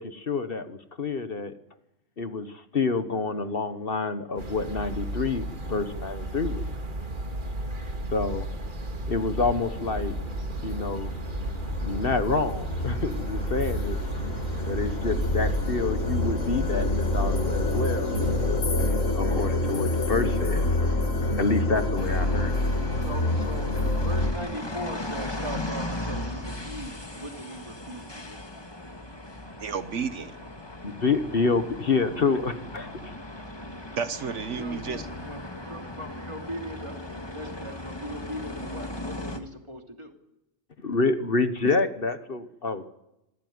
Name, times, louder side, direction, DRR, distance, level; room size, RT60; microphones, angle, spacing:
voice 1, 0.0-1.5 2.2-6.6 8.1-8.5 9.1-10.2 10.6-11.1 11.8-14.0 14.6-18.1 19.1-20.7 21.4-22.5 30.8-33.1 40.8-42.9, left 4 dB, 50° left, 10 dB, 1.4 m, -28 dB
sound 1, 4.4-18.6, right 1 dB, 40° right, 1.9 m, -34 dB
sound 2, 7.4-7.5 8.0-24.3, left 1 dB, 80° left, 2.2 m, -28 dB
sound 3, 22.0-39.4, left 1 dB, 20° left, 1.9 m, -37 dB
voice 2, 23.0-28.4 34.6-35.4 35.7-40.1, right 1 dB, 20° right, 3 dB, 2.9 m, -39 dB
voice 3, 29.6-30.4 34.0-35.1 41.6-41.8, right 6 dB, 70° right, 11 dB, 1.4 m, -31 dB
26.5 x 14.5 x 9.5 m, 0.91 s
omnidirectional pair, 1.3 m